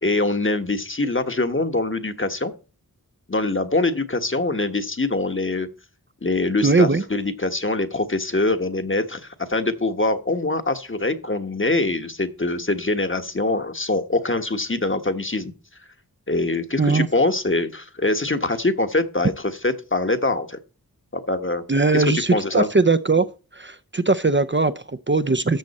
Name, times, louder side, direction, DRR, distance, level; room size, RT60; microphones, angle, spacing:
voice 1, 0.0-2.5 3.3-5.7 6.2-15.5 16.3-19.3 19.6-20.6 21.1-21.7 21.9-22.1 22.3-22.7, left 2 dB, 35° left, 1.3 m, -23 dB
voice 2, 6.6-7.0 16.8-17.1 21.7-23.3 23.5-25.6, right 3 dB, 30° right, 0.6 m, -20 dB
13.5 x 7.7 x 4.2 m
wide cardioid pair, 55°, 36 cm